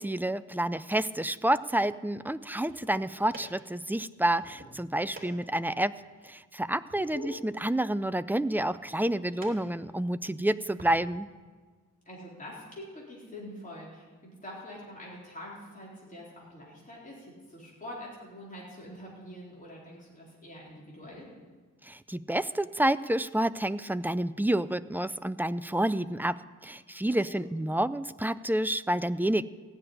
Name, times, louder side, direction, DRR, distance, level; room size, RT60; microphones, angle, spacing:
voice 1, 0.0-11.3 21.8-29.4, right 1 dB, 5° right, 13 dB, 0.3 m, -29 dB
sound 1, 2.5-11.0, right 1 dB, 30° right, 2.6 m, -53 dB
voice 2, 7.0-7.3 12.1-21.3 27.1-27.5, left 1 dB, 25° left, -5 dB, 4.1 m, -45 dB
15.5 x 6.8 x 9.9 m, 1.4 s
wide cardioid pair, 140°, 31 cm